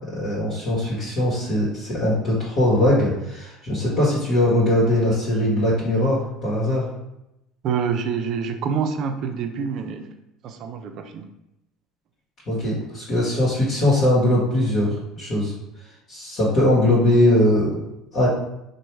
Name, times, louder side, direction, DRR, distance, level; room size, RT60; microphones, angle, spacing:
voice 1, 0.1-6.8 12.5-15.5 16.1-17.8 18.1-18.3, left 1 dB, 50° left, -7 dB, 1.4 m, -20 dB
voice 2, 7.6-10.1 10.4-11.3, right 6 dB, 55° right, 6 dB, 0.5 m, -26 dB
3.1 x 2.6 x 4.4 m, 0.87 s
hypercardioid pair, 80°, 0 cm